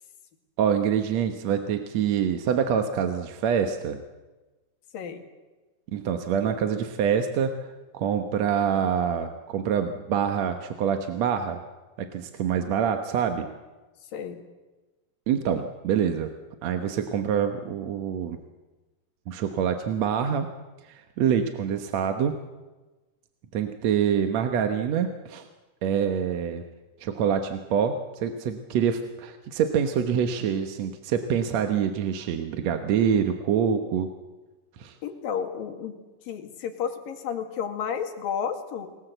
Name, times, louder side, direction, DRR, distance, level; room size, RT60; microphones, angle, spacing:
voice 1, 0.6-4.0 5.9-7.7 7.9-11.6 12.0-13.5 15.3-16.3 16.6-18.4 19.3-20.5 20.9-22.4 23.5-25.4 25.8-26.6 27.0-34.1 34.8-35.0, right 8 dB, 60° right, 6 dB, 2.1 m, -26 dB
voice 2, 4.9-5.3 14.1-14.4 35.0-36.0 36.2-38.9, left 7 dB, 90° left, 6 dB, 3.8 m, -32 dB
29.5 x 20.0 x 8.0 m, 1.2 s
omnidirectional pair, 3.9 m